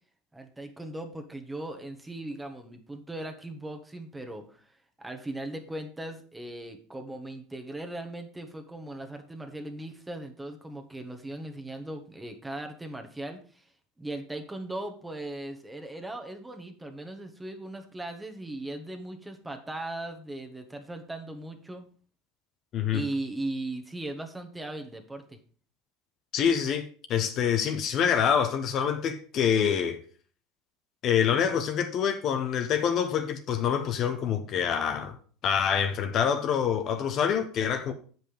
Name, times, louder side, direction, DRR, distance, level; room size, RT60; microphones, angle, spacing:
voice 1, 0.3-4.7 5.0-13.7 14.0-21.9 22.9-25.4, right 1 dB, 10° right, 1.3 m, -38 dB
voice 2, 26.3-30.0 31.0-35.2 35.4-37.9, left 8 dB, 50° left, 0.9 m, -26 dB
7.5 x 5.4 x 5.0 m
supercardioid pair, 100°, 0 cm